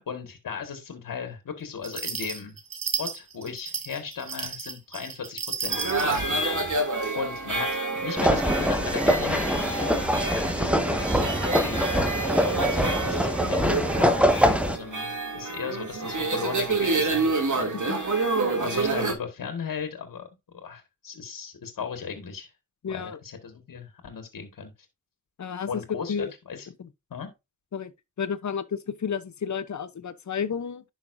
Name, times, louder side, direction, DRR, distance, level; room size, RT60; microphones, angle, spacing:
voice 1, 0.1-2.6 3.0-6.7 7.2-12.1 12.4-17.8 18.6-22.5 22.9-24.7 25.7-26.7 27.1-27.3, left 6 dB, 80° left, 1.7 m, -37 dB
sound 1, 1.8-6.2, right 6 dB, 90° right, 1.4 m, -33 dB
sound 2, 5.7-19.1, right 3 dB, 65° right, 2.6 m, -28 dB
sound 3, 8.2-14.8, equal, 5° right, 1.3 m, -24 dB
voice 2, 22.8-23.2 25.4-25.7 26.1-26.3 26.8-26.9 27.7-27.9 28.2-30.8, left 6 dB, 60° left, 0.8 m, -31 dB
10.5 x 5.7 x 2.6 m
cardioid pair, 45°, 33 cm